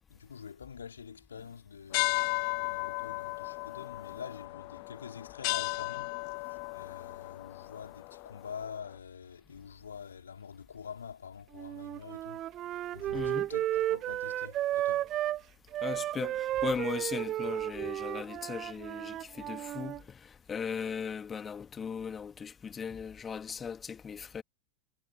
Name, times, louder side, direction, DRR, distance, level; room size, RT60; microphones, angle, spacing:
voice 1, 0.1-12.4 12.7-15.1, left 7 dB, 70° left, 4.6 m, -46 dB
sound 1, 1.9-8.8, left 40 dB or more, 45° left, 0.3 m, -35 dB
Wind instrument woodwind instrument, 11.5-15.4 15.7-20.0, right 13 dB, 30° right, 1.3 m, -33 dB
voice 2, 13.1-13.5 15.8-24.4, left 6 dB, 20° left, 2.0 m, -38 dB
figure-of-eight pair, 90°, 0 cm